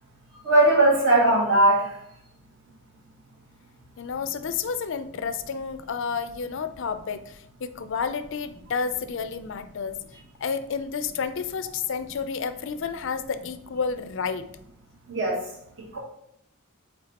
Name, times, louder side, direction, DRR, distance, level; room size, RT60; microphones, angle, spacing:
voice 1, 0.4-2.0 15.1-15.4 15.8-16.0, right 1 dB, 55° right, -4 dB, 2.2 m, -19 dB
voice 2, 4.0-10.0 10.4-14.5, left 6 dB, 55° left, 11 dB, 0.4 m, -30 dB
8.8 x 3.7 x 2.9 m, 0.76 s
head